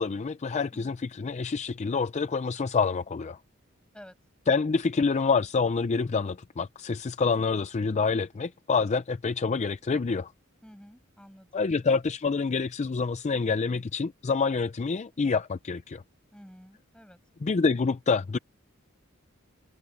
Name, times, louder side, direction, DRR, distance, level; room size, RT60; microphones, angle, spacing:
voice 1, 0.0-3.4 4.5-10.3 11.5-16.0 17.4-18.4, left 4 dB, 35° left, 0.4 m, -27 dB
voice 2, 10.6-11.7 16.3-17.2, equal, 5° left, 6.2 m, -50 dB
head